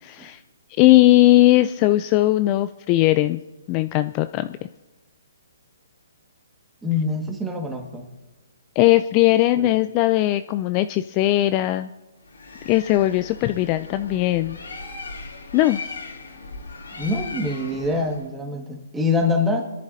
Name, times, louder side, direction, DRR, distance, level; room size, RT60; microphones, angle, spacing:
voice 1, 0.0-0.4 0.8-3.4 3.7-4.6 8.8-11.9 12.7-14.6 15.5-15.9, left 16 dB, 30° left, 11 dB, 0.3 m, -19 dB
voice 2, 6.8-8.1 9.6-9.7 17.0-19.7, left 3 dB, 10° right, 3 dB, 1.8 m, -25 dB
Bird, 12.2-18.3, left 3 dB, 90° left, 3.1 m, -38 dB
26.5 x 10.5 x 2.7 m, 1.2 s
hypercardioid pair, 145°, 0 cm